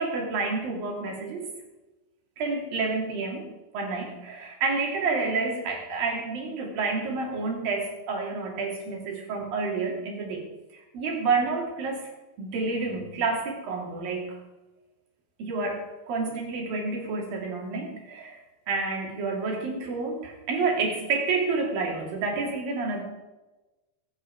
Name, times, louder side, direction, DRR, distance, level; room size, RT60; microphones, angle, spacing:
voice 1, 0.0-1.5 2.4-3.5 3.7-12.1 12.4-14.4 15.4-18.4 18.7-23.0, right 4 dB, 80° right, 0 dB, 4.5 m, -29 dB
23.5 x 8.4 x 4.7 m, 1.1 s
omnidirectional pair, 4.0 m